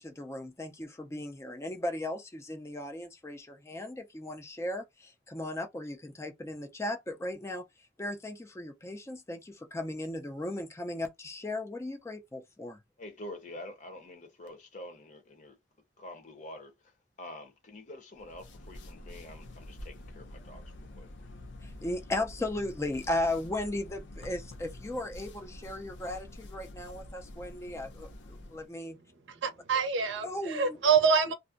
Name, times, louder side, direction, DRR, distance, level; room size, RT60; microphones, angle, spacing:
voice 1, 0.0-12.8 21.6-29.0 30.2-30.8, left 1 dB, 15° left, 0.3 m, -36 dB
voice 2, 13.0-15.6 16.0-21.1, left 1 dB, 40° left, 0.7 m, -47 dB
sound 1, 18.2-28.7, left 1 dB, 75° left, 0.5 m, -47 dB
voice 3, 29.3-31.3, right 6 dB, 80° right, 0.5 m, -26 dB
2.5 x 2.0 x 2.4 m
head